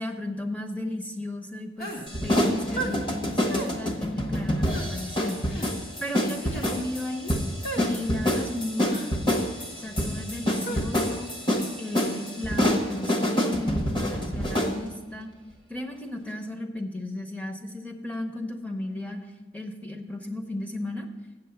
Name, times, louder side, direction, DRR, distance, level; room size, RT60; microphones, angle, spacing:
voice 1, 0.0-1.9 2.2-5.4 6.0-7.3 7.7-9.3 9.8-11.4 11.8-15.3 15.7-19.3 19.5-21.1, left 1 dB, 10° left, 3 dB, 0.8 m, -34 dB
sound 1, 1.8-2.1 2.8-3.0 3.5-3.7 4.7-4.9 5.5-5.7 6.4-6.7 7.6-7.9 8.9-9.1 10.7-10.9, right 2 dB, 55° left, 1.2 m, -34 dB
sound 2, 2.1-14.8, equal, 30° left, 1.2 m, -27 dB
8.2 x 6.9 x 7.0 m, 1.1 s
head